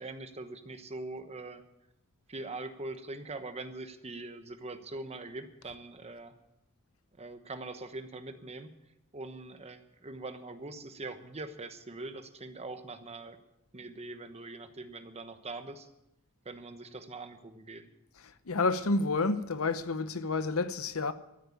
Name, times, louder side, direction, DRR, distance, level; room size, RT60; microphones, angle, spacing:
voice 1, 0.0-1.6 2.3-6.3 7.2-8.7 9.1-13.4 13.7-15.9 16.4-17.9, right 2 dB, 30° right, 1.1 m, -42 dB
voice 2, 18.2-21.1, left 3 dB, 70° left, 0.8 m, -30 dB
14.0 x 9.0 x 8.6 m
head